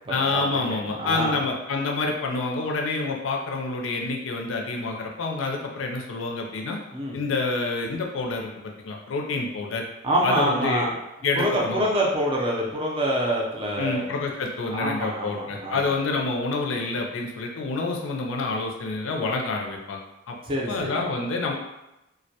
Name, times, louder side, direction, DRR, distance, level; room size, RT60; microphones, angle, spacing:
voice 1, 0.1-6.8 7.1-9.8 10.2-10.9 11.2-11.8 13.8-20.4 20.7-21.5, left 3 dB, 80° left, 1 dB, 0.4 m, -28 dB
voice 2, 0.7-1.3 6.9-7.2 10.0-11.0 11.3-14.0 14.7-15.9 20.4-21.0, right 1 dB, 25° right, -3 dB, 0.4 m, -26 dB
2.2 x 2.1 x 2.7 m, 0.92 s
head